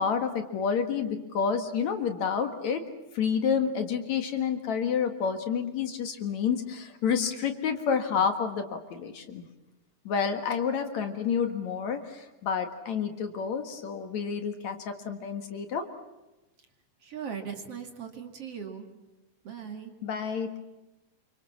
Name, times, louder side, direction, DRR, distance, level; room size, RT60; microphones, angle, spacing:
voice 1, 0.0-2.8 3.1-9.4 10.1-15.9 20.0-20.6, left 6 dB, 60° left, 7 dB, 2.8 m, -29 dB
voice 2, 17.0-18.9 19.4-19.9, right 7 dB, 45° right, 5 dB, 3.1 m, -39 dB
28.0 x 25.0 x 7.3 m, 1.0 s
omnidirectional pair, 3.9 m